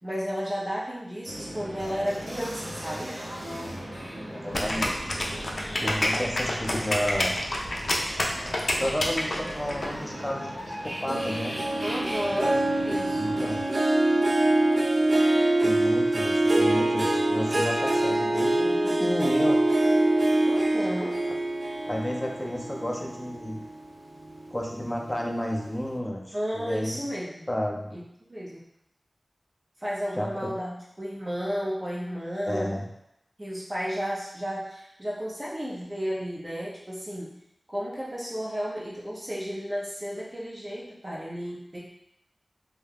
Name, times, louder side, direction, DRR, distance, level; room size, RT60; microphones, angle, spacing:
voice 1, 0.0-3.2 11.8-13.4 20.4-21.2 26.3-27.5 27.9-28.6 29.8-32.7 33.4-37.4 37.7-41.8, equal, 35° right, -6 dB, 0.7 m, -33 dB
sound 1, 1.2-13.6, equal, 85° right, 1.1 m, -38 dB
voice 2, 4.3-5.0 5.8-7.4 8.8-11.5 13.1-13.6 15.6-19.6 21.9-23.6 24.5-26.9 27.5-28.0 30.1-30.3 32.5-32.8, equal, 20° left, -1 dB, 0.6 m, -31 dB
sound 2, 4.5-9.9, left 1 dB, 65° left, 0.4 m, -28 dB
Harp, 11.1-23.8 24.2-24.6 25.1-25.2, right 1 dB, 60° right, 0.3 m, -24 dB
2.3 x 2.2 x 3.3 m, 0.81 s
cardioid pair, 45°, 0 cm